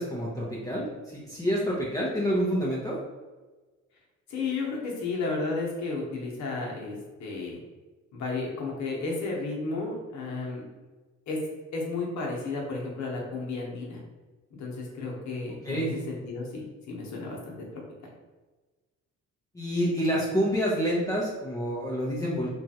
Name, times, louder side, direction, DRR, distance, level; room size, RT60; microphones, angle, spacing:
voice 1, 0.0-3.0 15.6-15.9 19.5-22.5, equal, 10° left, -6 dB, 0.6 m, -28 dB
voice 2, 4.3-7.6 8.1-10.6 11.3-11.4 11.7-14.0 14.5-17.7, left 3 dB, 70° left, -2 dB, 1.0 m, -33 dB
3.0 x 2.4 x 2.8 m, 1.2 s
cardioid pair, 90°, 30 cm